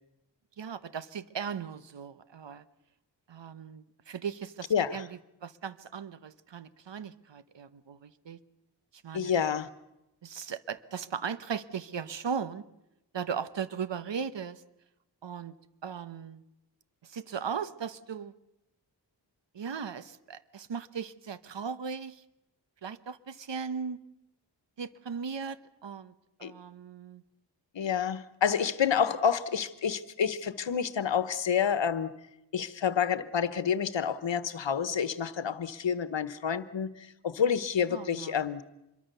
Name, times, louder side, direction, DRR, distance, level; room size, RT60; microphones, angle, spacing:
voice 1, 0.6-2.6 3.3-5.1 5.4-8.4 9.0-9.4 10.2-12.6 13.1-14.6 15.2-15.5 15.8-16.4 17.0-18.3 19.5-22.2 22.8-24.0 24.8-26.1 26.4-27.2 37.9-38.4, right 6 dB, 70° right, 14 dB, 1.1 m, -37 dB
voice 2, 4.7-5.0 9.1-9.7 26.4-26.5 27.7-32.1 32.5-38.6, left 7 dB, 75° left, 15 dB, 1.2 m, -29 dB
25.5 x 22.5 x 6.9 m, 0.89 s
wide cardioid pair, 95°, 45 cm